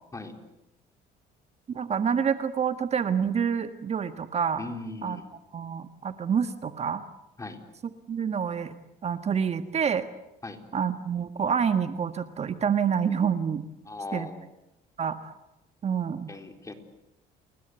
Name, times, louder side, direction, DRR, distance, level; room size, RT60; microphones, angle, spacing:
voice 1, 1.7-4.6 5.0-5.2 5.5-7.0 8.1-8.7 9.0-10.1 10.7-13.7 14.1-14.3 15.0-15.3 15.8-16.3, right 7 dB, 40° right, 10 dB, 1.6 m, -27 dB
voice 2, 4.6-5.2 7.4-7.6 10.4-10.6 13.8-14.5 16.3-16.7, left 2 dB, 20° left, 6 dB, 4.2 m, -38 dB
30.0 x 21.5 x 8.2 m, 0.93 s
cardioid pair, 110°, 17 cm